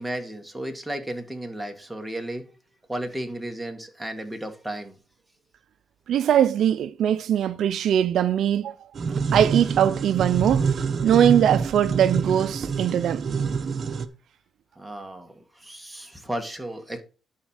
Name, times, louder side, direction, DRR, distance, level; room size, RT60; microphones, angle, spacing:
voice 1, 0.0-2.4 2.9-5.0 14.8-17.0, right 1 dB, 5° right, 1.9 m, -34 dB
voice 2, 6.1-8.8 9.3-10.7 11.0-13.2, right 10 dB, 70° right, 0.5 m, -21 dB
sound 1, 9.0-14.1, right 5 dB, 45° right, 1.0 m, -26 dB
11.0 x 4.4 x 6.4 m
cardioid pair, 90°, 0 cm